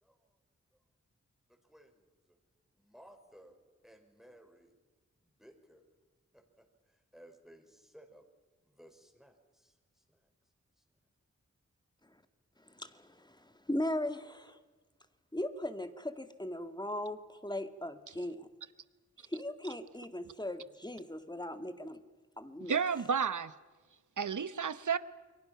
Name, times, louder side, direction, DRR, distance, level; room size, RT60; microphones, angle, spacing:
voice 1, 1.7-2.4 2.8-3.6 3.8-4.7 5.2-5.8 6.3-6.7 7.1-8.2 8.6-9.7 10.1-10.2, equal, ahead, 4 dB, 5.1 m, -58 dB
voice 2, 12.6-14.6 15.3-18.5 19.3-22.0 22.4-22.8, left 1 dB, 15° left, 8 dB, 2.0 m, -38 dB
voice 3, 22.7-23.5 24.2-25.0, right 6 dB, 80° right, 14 dB, 1.0 m, -31 dB
29.0 x 22.5 x 5.8 m, 1.3 s
cardioid pair, 45°, 30 cm